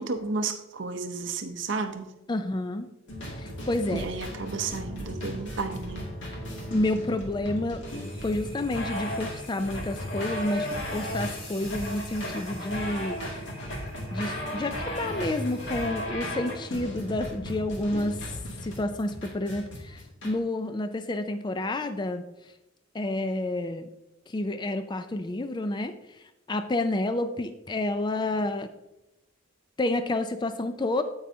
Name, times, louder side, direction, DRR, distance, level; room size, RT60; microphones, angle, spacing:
voice 1, 0.0-2.1 3.9-6.0, right 4 dB, 60° right, 7 dB, 0.7 m, -32 dB
voice 2, 2.3-2.9 3.4-4.1 6.7-7.8 8.2-13.2 14.1-22.2 22.9-23.9 24.3-25.9 26.5-28.7 29.8-31.0, left 2 dB, 20° left, 9 dB, 0.4 m, -29 dB
sound 1, 3.1-20.3, equal, 60° left, 2.2 m, -35 dB
sound 2, 7.9-15.9, left 1 dB, 45° left, 3.0 m, -49 dB
9.3 x 8.7 x 2.7 m, 0.95 s
head